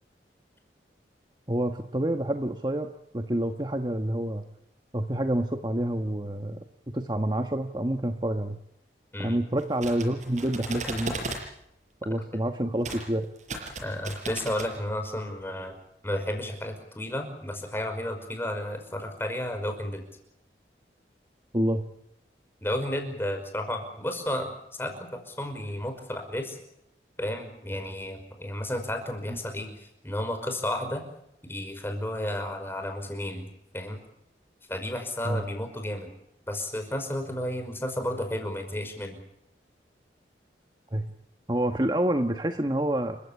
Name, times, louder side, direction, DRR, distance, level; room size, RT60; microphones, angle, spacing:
voice 1, 1.5-4.4 4.9-6.6 6.9-8.6 9.2-11.4 12.0-13.3 13.6-13.7 21.5-21.8 29.3-29.4 35.2-35.4 40.9-41.0 41.5-43.2, right 1 dB, 25° right, 6 dB, 1.3 m, -28 dB
sound 1, 9.6-11.4 12.8-13.0 13.4-14.7, right 2 dB, 40° right, 6.5 m, -36 dB
voice 2, 13.8-15.8 16.0-20.0 22.6-26.6 27.2-31.0 31.5-33.5 33.7-34.0 34.7-36.1 36.5-39.2, left 1 dB, 15° left, 6 dB, 5.3 m, -32 dB
30.0 x 15.5 x 8.8 m, 0.77 s
head